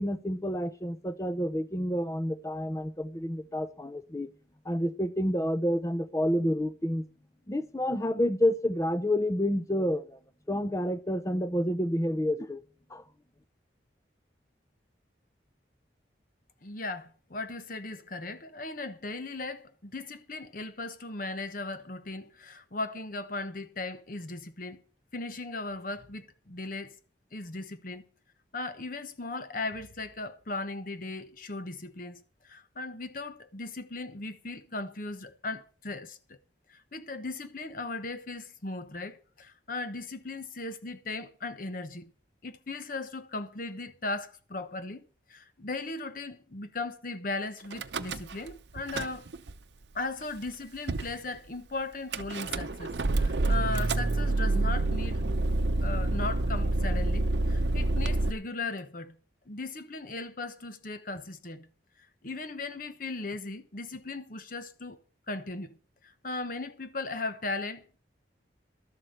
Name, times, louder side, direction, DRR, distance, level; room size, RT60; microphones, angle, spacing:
voice 1, 0.0-4.3 4.7-7.0 7.5-10.2 10.5-12.6 12.9-13.0, equal, 15° left, 0.7 m, -29 dB
voice 2, 16.6-24.8 25.1-27.0 27.3-28.0 28.5-36.4 36.7-42.1 42.4-49.3 49.9-55.2 55.8-59.1 59.5-61.7 62.2-65.0 65.3-65.8 66.2-68.0, left 3 dB, 50° left, 1.0 m, -37 dB
Car / Engine starting / Idling, 47.7-48.5 48.8-49.5 50.2-50.3 50.5-50.6 50.9-51.2 52.1-58.3, right 2 dB, 70° right, 0.7 m, -28 dB
12.5 x 7.7 x 6.6 m
head